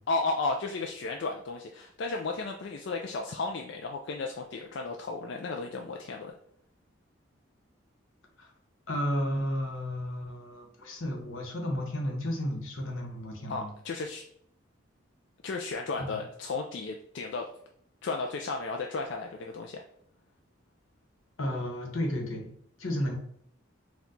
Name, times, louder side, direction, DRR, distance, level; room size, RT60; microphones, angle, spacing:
voice 1, 0.1-6.3 13.5-14.2 15.4-17.5 18.0-19.8, left 3 dB, 55° left, 2 dB, 0.3 m, -34 dB
voice 2, 8.9-13.7 15.9-16.2 21.4-22.5 22.8-23.2, equal, 80° left, 1 dB, 1.0 m, -32 dB
4.4 x 2.3 x 3.8 m, 0.66 s
head